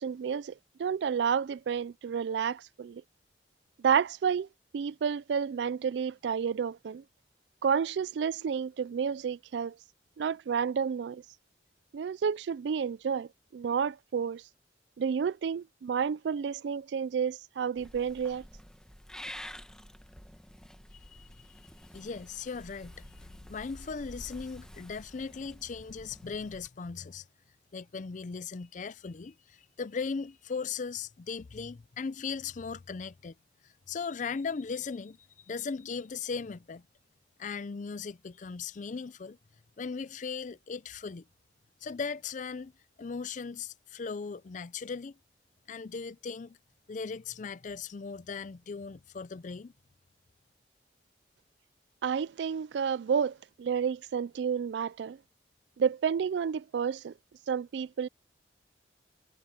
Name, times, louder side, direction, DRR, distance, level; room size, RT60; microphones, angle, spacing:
voice 1, 0.0-3.0 3.8-4.5 4.7-7.0 7.6-9.8 10.2-11.2 11.9-14.4 15.0-18.4 52.0-55.2 55.8-57.1 57.5-58.1, right 7 dB, 75° right, 0.3 m, -30 dB
Purr / Meow, 17.8-26.7, equal, 5° left, 1.3 m, -49 dB
voice 2, 20.9-21.5 21.9-23.0 23.5-27.3 27.7-33.3 33.6-36.9 37.4-39.4 39.8-41.2 41.8-42.7 43.0-45.2 45.7-46.6 46.9-49.7, left 5 dB, 45° left, 0.4 m, -38 dB
head